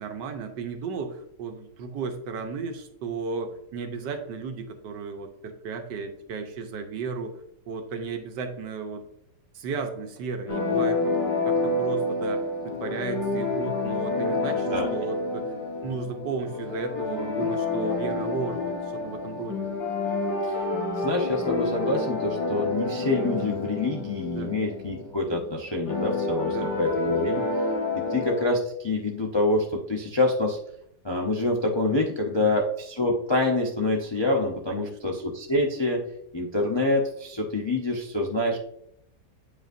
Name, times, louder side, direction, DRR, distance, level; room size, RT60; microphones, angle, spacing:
voice 1, 0.0-7.4 7.7-9.0 9.5-11.0 11.5-15.5 15.8-19.7 24.3-24.5 26.5-26.8 32.4-32.6 34.7-35.2, right 4 dB, 85° right, 6 dB, 1.5 m, -34 dB
sound 1, 10.5-28.4, left 3 dB, 70° left, 2.4 m, -28 dB
voice 2, 21.0-27.4 27.9-30.6 31.0-36.0 36.3-38.6, left 2 dB, 45° left, -1 dB, 0.3 m, -26 dB
8.3 x 5.2 x 2.6 m, 0.73 s
omnidirectional pair, 1.8 m